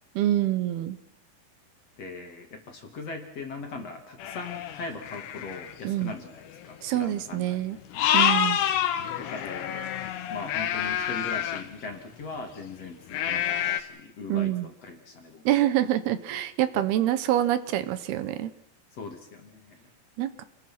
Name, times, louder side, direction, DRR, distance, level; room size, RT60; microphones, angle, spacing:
voice 1, 0.2-1.0 5.8-6.1 6.8-7.8 8.1-8.6 14.3-14.7 15.5-18.5 20.2-20.4, right 13 dB, 75° right, 12 dB, 2.9 m, -26 dB
voice 2, 2.0-8.0 9.2-9.9 10.3-15.5 18.9-19.9, left 3 dB, 45° left, 4 dB, 3.0 m, -40 dB
sound 1, 4.2-5.7 6.5-6.7 7.0-7.1 7.9-11.6 13.1-13.8, left 10 dB, 85° left, 3.5 m, -27 dB
29.5 x 21.0 x 6.0 m, 0.80 s
omnidirectional pair, 4.7 m